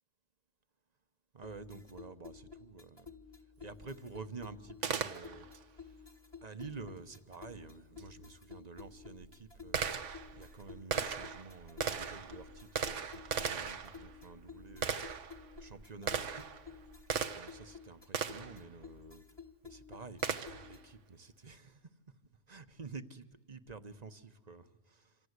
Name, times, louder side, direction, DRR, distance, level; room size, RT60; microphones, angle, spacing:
voice 1, 1.3-3.1 3.6-6.0 6.4-10.0 10.3-16.6 17.3-19.2 19.6-21.9 22.5-25.2, right 4 dB, 35° right, 1.2 m, -50 dB
sound 1, 1.4-21.0, left 5 dB, 20° left, 1.5 m, -53 dB
Gunshot gunfire, 4.8-5.6 8.0-8.1 8.8-17.7 18.1-18.6 20.2-20.8, right 6 dB, 80° right, 1.5 m, -38 dB
28.0 x 26.0 x 8.2 m
omnidirectional pair, 1.2 m